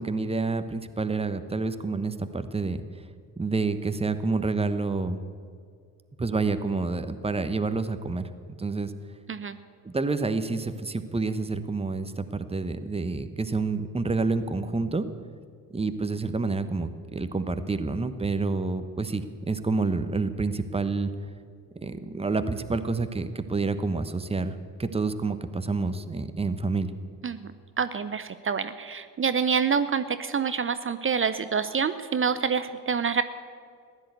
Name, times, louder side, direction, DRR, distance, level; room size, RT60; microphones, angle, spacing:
voice 1, 0.0-2.8 3.4-5.2 6.2-8.3 8.6-8.9 9.8-15.0 15.7-21.1 21.7-26.9, right 3 dB, 15° right, 11 dB, 1.0 m, -28 dB
voice 2, 27.8-33.2, right 6 dB, 30° right, 12 dB, 0.7 m, -27 dB
15.0 x 10.5 x 8.1 m, 2.2 s
hypercardioid pair, 50°, 45 cm